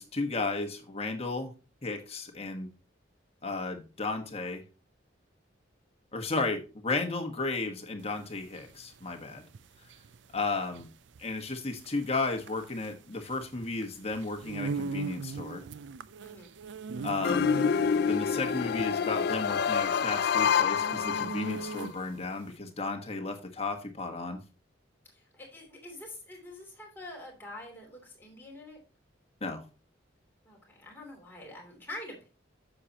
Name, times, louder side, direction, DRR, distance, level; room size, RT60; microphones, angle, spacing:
voice 1, 0.0-1.5 1.8-2.7 3.4-4.6 6.1-9.4 10.3-10.9 11.2-15.6 17.0-17.5 18.0-24.4 29.4-29.6, left 3 dB, 30° left, 1.4 m, -34 dB
sound 1, 8.1-22.3, right 5 dB, 65° right, 0.4 m, -40 dB
voice 2, 16.2-16.5 25.1-28.8 30.4-32.3, left 1 dB, 10° left, 3.0 m, -46 dB
sound 2, 17.2-21.9, left 7 dB, 55° left, 0.4 m, -27 dB
9.6 x 7.1 x 2.9 m
head